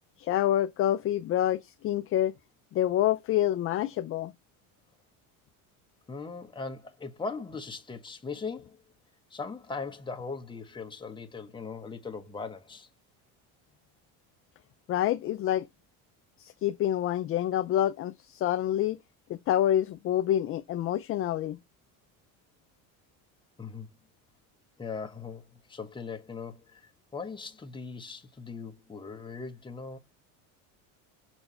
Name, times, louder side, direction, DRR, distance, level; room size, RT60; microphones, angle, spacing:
voice 1, 0.2-2.3 2.7-4.3 14.9-15.7 16.4-19.0 19.3-21.6, left 12 dB, 35° left, 0.4 m, -27 dB
voice 2, 6.1-8.8 9.3-12.9 23.6-23.9 24.8-30.0, left 4 dB, 10° left, 1.1 m, -39 dB
6.8 x 4.4 x 4.3 m
cardioid pair, 135°, 38 cm